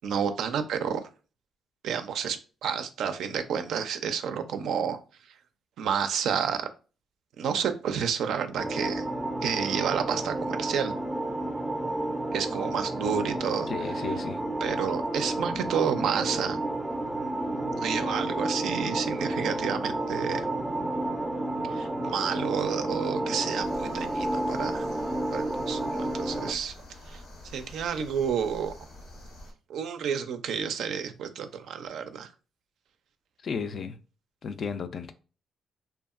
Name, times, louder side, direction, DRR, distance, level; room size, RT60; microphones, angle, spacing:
voice 1, 0.0-1.0 1.8-5.0 5.8-6.6 7.4-9.1 9.4-10.9 12.3-13.7 14.6-16.6 17.8-20.5 21.7-24.9 25.3-26.7 27.1-27.2 27.5-28.7 29.7-32.3, right 7 dB, 75° right, 0.3 m, -30 dB
sound 1, 8.6-26.5, right 1 dB, 15° right, 0.4 m, -31 dB
voice 2, 13.7-14.4 19.3-19.5 33.4-34.0 34.4-35.1, left 6 dB, 55° left, 0.3 m, -34 dB
sound 2, 23.6-29.5, left 1 dB, 90° left, 1.0 m, -47 dB
2.7 x 2.2 x 2.4 m
cardioid pair, 90°, 0 cm